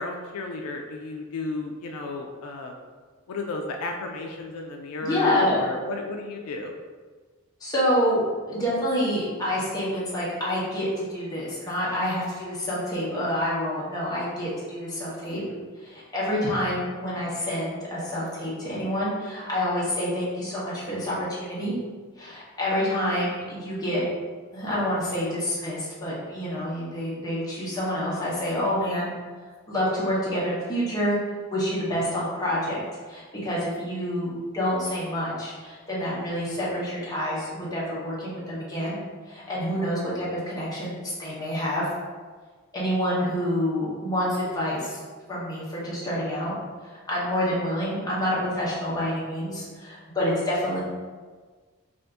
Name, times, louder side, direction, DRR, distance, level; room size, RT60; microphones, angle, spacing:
voice 1, 0.0-2.8 3.3-6.7 28.1-28.3, left 2 dB, 75° left, 2 dB, 0.3 m, -33 dB
voice 2, 5.0-5.6 7.6-15.4 15.8-21.8 22.2-24.0 24.5-29.1 29.7-31.2 31.5-32.8 33.1-39.0 39.3-41.9 42.7-45.0 45.3-46.5 46.9-50.8, equal, 15° left, -7 dB, 0.8 m, -27 dB
2.6 x 2.4 x 3.4 m, 1.4 s
head